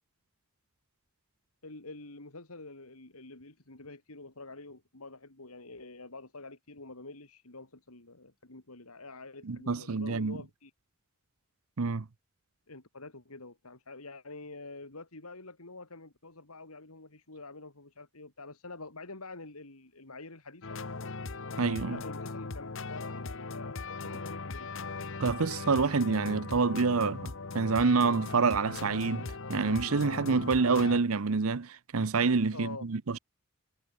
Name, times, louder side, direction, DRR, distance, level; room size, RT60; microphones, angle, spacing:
voice 1, 1.6-10.7 12.7-20.8 21.8-24.7 32.5-32.9, left 3 dB, 80° left, 3.3 m, -47 dB
voice 2, 9.4-10.4 11.8-12.1 21.6-22.0 25.2-33.2, right 4 dB, 70° right, 0.8 m, -27 dB
sound 1, 20.6-31.0, left 3 dB, 60° left, 1.2 m, -39 dB
head